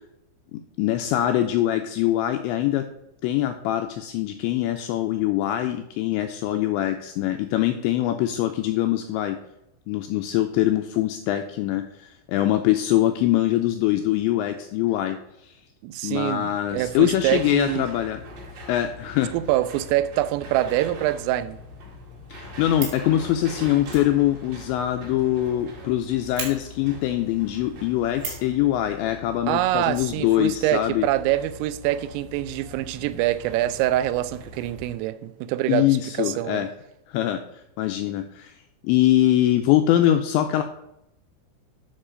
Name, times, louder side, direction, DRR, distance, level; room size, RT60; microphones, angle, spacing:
voice 1, 0.5-2.9 3.2-9.4 9.9-15.6 16.0-18.2 18.7-19.3 22.3-31.1 35.7-36.7 37.1-38.6 38.8-40.6, left 13 dB, 85° left, 2.6 m, -23 dB
voice 2, 15.8-17.9 19.3-21.6 29.5-35.9 36.2-36.6, right 14 dB, 90° right, 3.2 m, -25 dB
sound 1, 16.7-35.0, left 2 dB, 45° right, 2.6 m, -42 dB
Fire, 22.7-23.1 23.8-25.6 25.9-26.0 26.3-26.5 28.1-28.5 29.9-30.8 31.1-31.2 31.4-31.5, right 5 dB, 65° right, 4.5 m, -36 dB
9.8 x 6.3 x 5.0 m
omnidirectional pair, 5.7 m